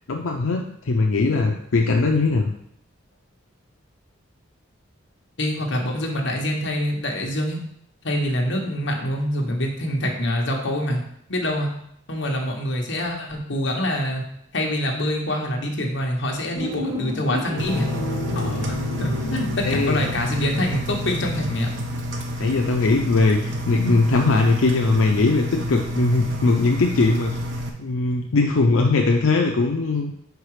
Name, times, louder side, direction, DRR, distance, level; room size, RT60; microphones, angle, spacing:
voice 1, 0.1-2.5 19.6-20.0 22.4-27.3 27.8-30.1, left 3 dB, 85° left, 1 dB, 0.6 m, -20 dB
voice 2, 5.4-7.6 8.0-11.0 11.3-11.7 12.1-14.2 14.5-17.9 18.3-21.7, left 1 dB, 60° left, 0 dB, 1.2 m, -25 dB
sound 1, 16.5-21.9 22.2-22.3, left 1 dB, 20° right, 1.6 m, -34 dB
Engine, 17.6-27.7, equal, 65° right, 0.8 m, -29 dB
sound 2, 17.7-24.3, left 3 dB, 30° left, 1.1 m, -35 dB
4.8 x 4.7 x 4.8 m, 0.71 s
head